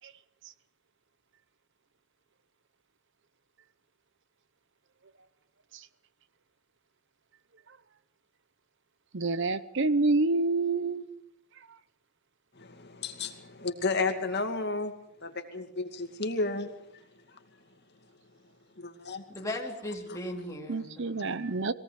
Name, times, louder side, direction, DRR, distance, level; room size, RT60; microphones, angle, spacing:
voice 1, 9.1-11.0 20.7-21.7, right 3 dB, 55° right, 15 dB, 0.8 m, -27 dB
voice 2, 12.6-14.9 15.2-16.7 18.8-19.2 20.1-20.2, left 3 dB, 45° left, 5 dB, 2.3 m, -32 dB
voice 3, 19.3-21.4, left 1 dB, 15° left, 0 dB, 3.7 m, -38 dB
23.5 x 17.5 x 8.1 m, 0.81 s
head